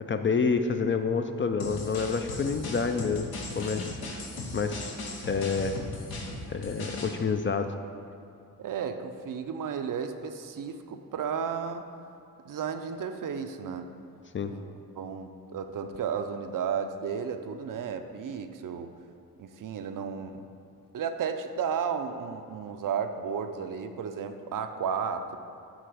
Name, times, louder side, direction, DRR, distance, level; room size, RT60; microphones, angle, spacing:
voice 1, 0.1-4.0 4.5-4.9 5.2-5.8 6.5-7.7 14.3-14.5, left 5 dB, 35° left, 7 dB, 0.4 m, -28 dB
sound 1, 1.6-7.1, left 2 dB, 85° left, 1.0 m, -37 dB
voice 2, 8.6-11.8 12.4-13.9 14.5-14.7 15.0-18.9 19.4-20.5 20.9-25.4, right 7 dB, 60° right, 7 dB, 0.5 m, -33 dB
9.0 x 3.0 x 4.9 m, 2.5 s
cardioid pair, 75°, 36 cm